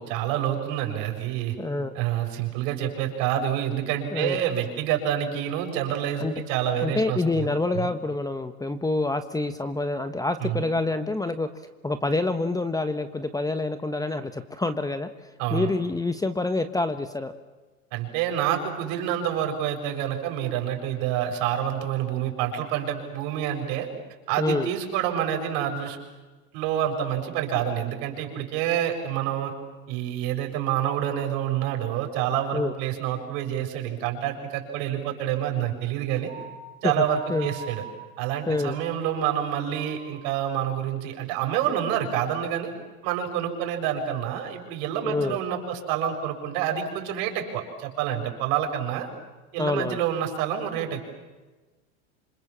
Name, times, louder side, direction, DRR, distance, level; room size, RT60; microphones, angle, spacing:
voice 1, 0.0-1.6 1.9-7.9 10.4-10.6 15.4-15.7 17.9-23.9 24.3-26.0 26.5-29.5 29.9-36.3 36.8-37.8 38.2-42.7 43.0-49.1 49.5-51.0, right 10 dB, 60° right, 4 dB, 7.2 m, -28 dB
voice 2, 1.6-1.9 4.1-4.4 6.2-6.3 6.8-11.5 11.8-17.3 24.4-24.7 32.5-32.7 36.8-37.0 37.3-37.5 38.5-38.8 45.0-45.4 49.6-50.0, left 2 dB, 10° left, 9 dB, 1.3 m, -27 dB
sound 1, 36.3-40.9, right 6 dB, 20° right, 6.0 m, -44 dB
27.0 x 27.0 x 7.5 m, 1.2 s
supercardioid pair, 120°, 42 cm